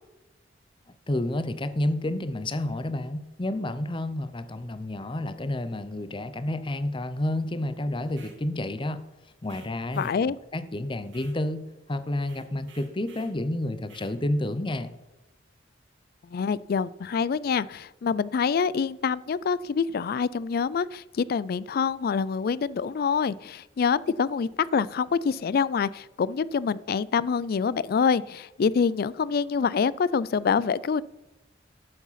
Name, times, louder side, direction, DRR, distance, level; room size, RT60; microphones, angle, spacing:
voice 1, 1.1-9.0 9.4-14.9, left 1 dB, 25° left, 12 dB, 0.7 m, -30 dB
sound 1, 8.0-8.4 9.4-10.2 11.1-11.4 12.2-13.4 13.8-14.2, right 5 dB, 75° right, 2.0 m, -54 dB
voice 2, 10.0-10.4 16.3-31.0, left 6 dB, 55° left, 20 dB, 0.3 m, -26 dB
11.0 x 7.3 x 5.7 m, 1.0 s
head